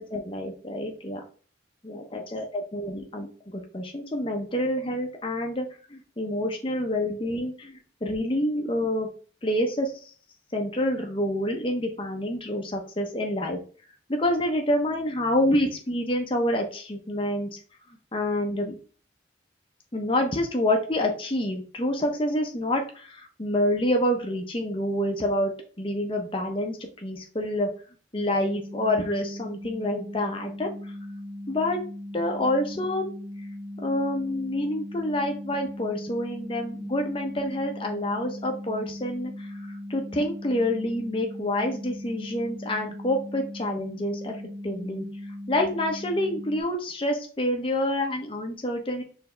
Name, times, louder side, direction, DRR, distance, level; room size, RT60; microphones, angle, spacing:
voice 1, 0.1-1.2 1.8-9.1 9.4-9.9 10.5-13.6 14.1-17.6 18.1-18.7 19.9-25.5 25.8-27.7 28.1-30.9 31.5-31.8 32.1-33.1 33.8-44.3 44.6-45.0 45.5-49.0, left 1 dB, 25° left, 3 dB, 0.7 m, -27 dB
sound 1, 28.1-46.6, left 1 dB, 5° left, 1.0 m, -39 dB
4.6 x 3.3 x 3.2 m, 0.39 s
head